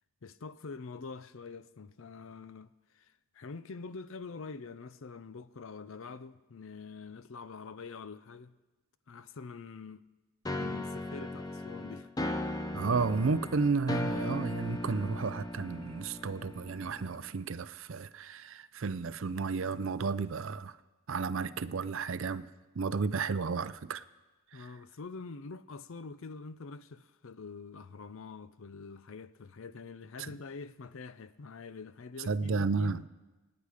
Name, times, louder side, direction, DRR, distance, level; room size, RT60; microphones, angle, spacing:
voice 1, 0.2-8.6 9.1-10.0 10.6-12.1 24.5-33.1, left 4 dB, 60° left, 0.5 m, -45 dB
sound 1, 10.5-17.3, left 1 dB, 15° left, 0.7 m, -37 dB
voice 2, 12.7-20.8 21.1-22.5 22.8-24.0 24.5-24.7 30.2-30.3 32.3-33.0, right 4 dB, 60° right, 0.5 m, -32 dB
26.0 x 9.7 x 5.0 m
head